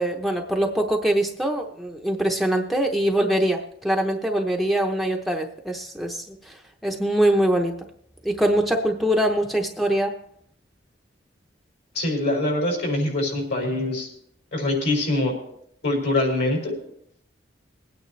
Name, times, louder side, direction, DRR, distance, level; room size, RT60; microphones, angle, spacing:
voice 1, 0.0-6.6 6.8-7.8 8.2-10.2, right 1 dB, ahead, 2 dB, 0.8 m, -23 dB
voice 2, 11.9-14.1 14.5-15.3 15.8-16.7, left 2 dB, 65° left, 0 dB, 5.6 m, -24 dB
22.0 x 9.3 x 3.2 m, 0.70 s
head